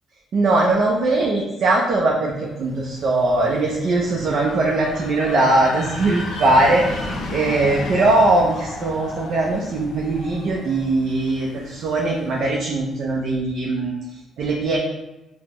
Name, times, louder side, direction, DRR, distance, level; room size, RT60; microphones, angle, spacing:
voice 1, 0.3-13.9 14.4-14.8, right 2 dB, 65° right, -2 dB, 0.5 m, -20 dB
sound 1, 2.6-12.4, left 1 dB, 80° left, 0.6 m, -34 dB
4.0 x 2.1 x 2.9 m, 0.99 s
cardioid pair, 90°, 0 cm